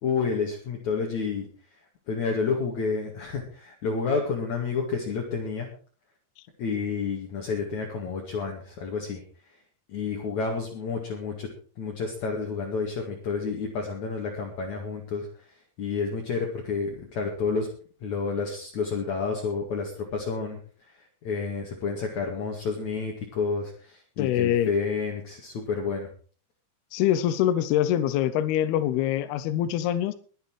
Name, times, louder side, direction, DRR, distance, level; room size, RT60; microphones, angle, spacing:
voice 1, 0.0-1.5 2.1-5.7 6.6-9.2 9.9-11.5 11.8-15.5 15.8-17.7 18.0-26.1, left 5 dB, 50° left, 0 dB, 3.1 m, -30 dB
voice 2, 24.2-24.7 26.9-30.1, left 11 dB, 80° left, 13 dB, 2.7 m, -24 dB
22.0 x 8.3 x 4.8 m, 0.41 s
omnidirectional pair, 4.6 m